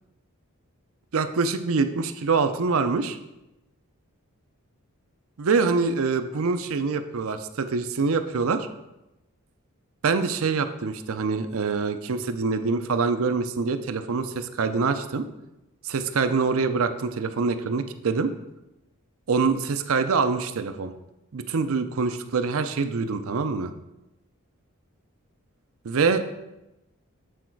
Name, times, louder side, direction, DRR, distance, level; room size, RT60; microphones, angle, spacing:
voice 1, 1.1-3.2 5.4-8.7 10.0-15.3 15.8-18.3 19.3-20.9 21.3-23.7 25.8-26.2, right 4 dB, 70° right, 9 dB, 0.5 m, -25 dB
8.4 x 4.2 x 4.6 m, 0.94 s
head